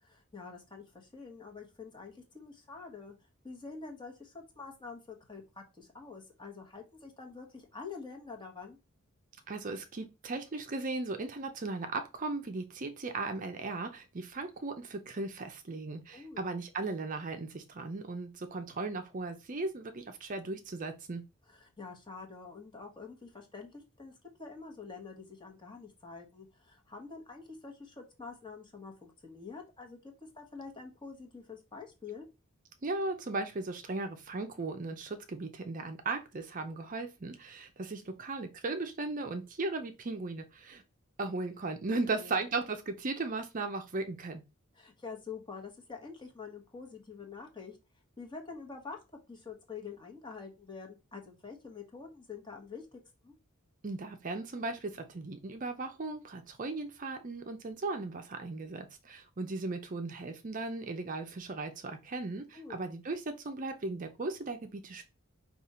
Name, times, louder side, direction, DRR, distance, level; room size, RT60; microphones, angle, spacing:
voice 1, 0.0-3.1 3.4-8.8 16.1-16.4 21.5-24.1 24.4-32.3 42.1-42.4 44.7-47.8 48.2-49.0 49.3-53.3 62.5-62.7, left 4 dB, 20° left, 1.1 m, -47 dB
voice 2, 9.5-21.2 32.8-40.8 41.2-44.4 53.8-65.0, right 3 dB, 40° right, 0.5 m, -37 dB
5.3 x 2.4 x 4.2 m
head